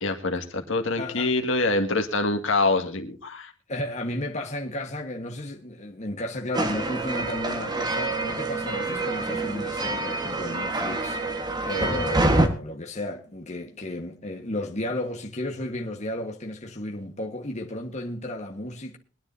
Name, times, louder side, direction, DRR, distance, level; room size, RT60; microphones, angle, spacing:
voice 1, 0.0-3.5, left 2 dB, 65° left, 2.0 m, -25 dB
voice 2, 1.0-1.3 3.7-19.0, left 1 dB, 35° left, 1.5 m, -33 dB
sound 1, 6.5-12.5, right 2 dB, 20° right, 1.5 m, -26 dB
22.5 x 10.0 x 2.8 m
head